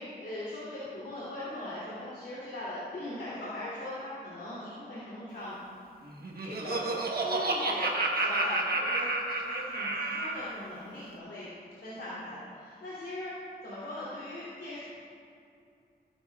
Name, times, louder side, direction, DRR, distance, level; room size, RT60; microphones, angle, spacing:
voice 1, 0.0-5.6 6.4-6.8 7.2-11.5 11.8-13.3 13.6-14.8, left 1 dB, 85° left, -9 dB, 3.1 m, -40 dB
Laughter, 6.1-10.5, right 2 dB, 60° right, 1.3 m, -30 dB
17.0 x 11.5 x 2.4 m, 2.5 s
wide cardioid pair, 90°, 17 cm